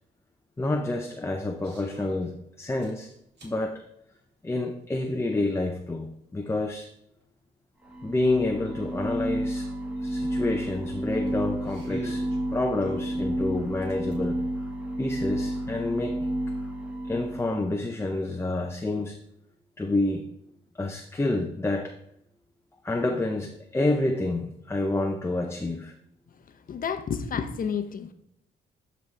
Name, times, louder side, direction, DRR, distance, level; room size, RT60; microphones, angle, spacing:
voice 1, 0.6-3.1 3.4-3.8 4.4-6.9 8.0-9.7 10.0-14.4 15.0-16.3 17.0-19.2 19.8-20.3 20.7-22.0 22.8-25.9, left 2 dB, 15° left, 4 dB, 0.6 m, -28 dB
sound 1, 1.6-2.3 2.8-3.6 5.0-5.1 7.8-7.9 8.2-8.3 8.7-8.9 10.5-12.4 12.8-14.2, right 2 dB, 60° right, 2.5 m, -44 dB
sound 2, 7.8-17.5, right 1 dB, 5° right, 1.4 m, -31 dB
voice 2, 26.7-28.1, left 6 dB, 45° left, 9 dB, 0.8 m, -30 dB
12.0 x 4.0 x 3.2 m, 0.77 s
cardioid pair, 90°, 20 cm